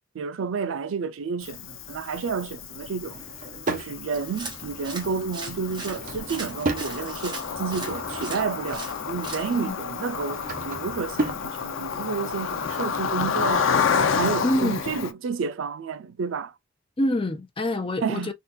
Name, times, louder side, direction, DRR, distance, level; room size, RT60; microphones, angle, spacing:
voice 1, 0.1-3.2 3.7-13.7 14.2-16.5 18.0-18.3, right 5 dB, 85° right, 0.4 m, -30 dB
Cricket, 1.4-15.1, left 6 dB, 85° left, 0.5 m, -30 dB
Drawer open or close / Wood, 2.9-3.9 5.6-6.9 7.5-8.6 9.9-11.5, right 2 dB, 45° right, 0.7 m, -33 dB
sound 1, 4.1-9.7, right 3 dB, 20° right, 1.2 m, -40 dB
voice 2, 14.4-14.8 17.0-18.3, left 1 dB, 25° left, 0.5 m, -26 dB
3.7 x 2.3 x 2.5 m
head